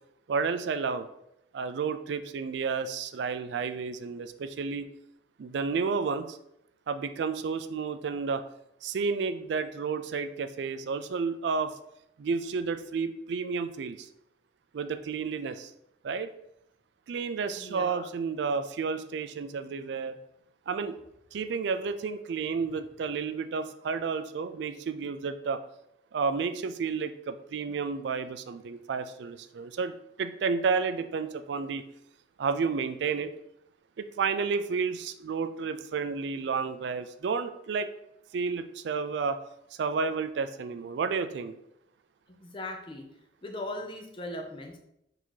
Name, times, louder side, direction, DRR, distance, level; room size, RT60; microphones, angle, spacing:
voice 1, 0.3-1.1 1.5-4.9 5.4-6.4 6.9-8.4 8.8-11.7 12.2-14.1 14.7-15.7 16.0-16.3 17.1-20.2 20.7-20.9 21.3-25.6 26.1-31.8 32.4-33.3 34.0-37.9 38.3-39.4 39.8-41.5, right 5 dB, 70° right, 10 dB, 0.3 m, -31 dB
voice 2, 17.6-18.1 42.3-43.0 43.4-44.8, left 1 dB, 25° left, 2 dB, 0.6 m, -39 dB
3.9 x 2.7 x 4.6 m, 0.80 s
head